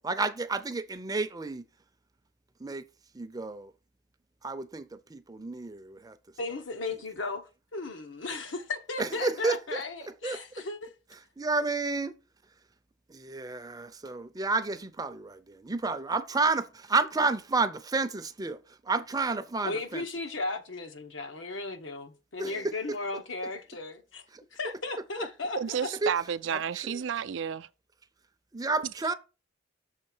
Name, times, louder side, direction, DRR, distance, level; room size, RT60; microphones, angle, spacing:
voice 1, 0.0-1.6 2.6-2.8 3.1-3.7 4.4-6.2 9.0-9.8 10.2-10.4 11.4-12.1 13.1-20.0 22.4-22.7 24.3-24.4 25.2-25.3 26.0-26.1 26.5-27.0 28.5-29.1, right 3 dB, 20° right, 0.5 m, -31 dB
voice 2, 6.4-10.9 19.6-24.2 24.5-25.9, left 3 dB, 80° left, 1.1 m, -36 dB
voice 3, 25.6-27.7, right 7 dB, 75° right, 0.4 m, -31 dB
6.5 x 3.7 x 6.0 m
head